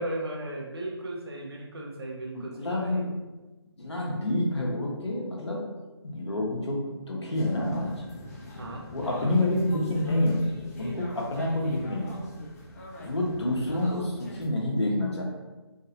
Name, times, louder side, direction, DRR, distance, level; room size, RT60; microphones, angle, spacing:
voice 1, 0.0-3.0 8.6-8.8, right 1 dB, 65° right, -1 dB, 0.9 m, -36 dB
voice 2, 2.3-3.2 3.8-5.6 6.0-8.0 8.9-12.4 13.0-15.2, left 1 dB, 80° left, -2 dB, 1.0 m, -28 dB
sound 1, 7.3-14.5, left 1 dB, 35° left, 0.6 m, -44 dB
3.8 x 2.6 x 2.6 m, 1.2 s
figure-of-eight pair, 155°, 14 cm